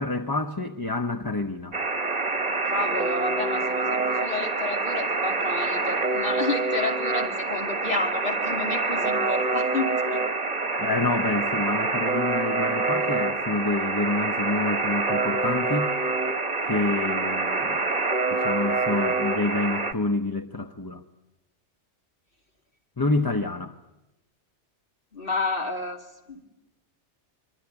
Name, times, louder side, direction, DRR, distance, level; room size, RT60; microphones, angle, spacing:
voice 1, 0.0-1.8 10.8-16.0 16.6-17.8 18.3-21.0 23.0-23.7, left 3 dB, 20° left, 6 dB, 0.9 m, -28 dB
Alarm, 1.7-19.9, right 3 dB, 35° right, 1.4 m, -26 dB
voice 2, 2.6-10.2 25.1-26.0 26.3-26.4, left 2 dB, 50° left, 3 dB, 2.8 m, -30 dB
24.0 x 23.0 x 9.9 m, 0.97 s
omnidirectional pair, 1.2 m